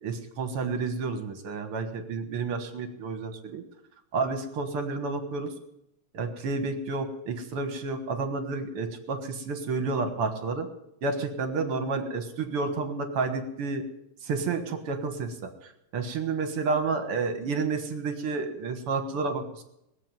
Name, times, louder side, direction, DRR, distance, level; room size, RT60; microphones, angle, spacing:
voice 1, 0.0-3.6 4.1-5.5 6.1-10.7 11.0-13.8 14.2-19.6, right 4 dB, 55° right, 8 dB, 2.1 m, -30 dB
20.0 x 7.8 x 9.1 m, 0.81 s
omnidirectional pair, 3.5 m